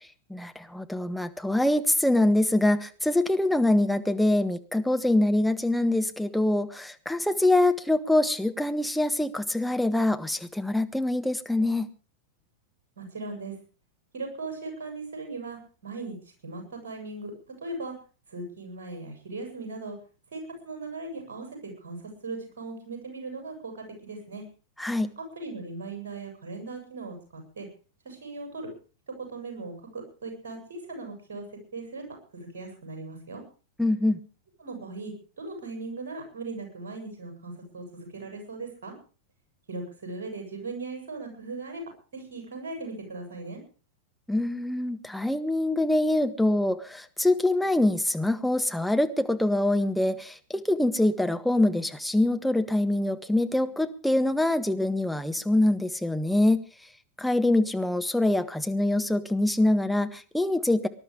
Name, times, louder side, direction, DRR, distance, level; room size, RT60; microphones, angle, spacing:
voice 1, 0.3-11.9 24.8-25.1 33.8-34.2 44.3-56.6 57.2-60.9, left 1 dB, ahead, 7 dB, 1.3 m, -24 dB
voice 2, 13.0-13.6 14.1-16.2 16.4-17.3 17.6-17.9 18.3-20.0 20.3-24.4 25.2-27.7 28.0-28.7 29.2-31.4 31.7-32.0 32.3-33.4 34.6-38.9 39.7-43.6, right 3 dB, 60° right, 3 dB, 7.7 m, -38 dB
20.0 x 11.5 x 5.1 m, 0.38 s
figure-of-eight pair, 90°, 0 cm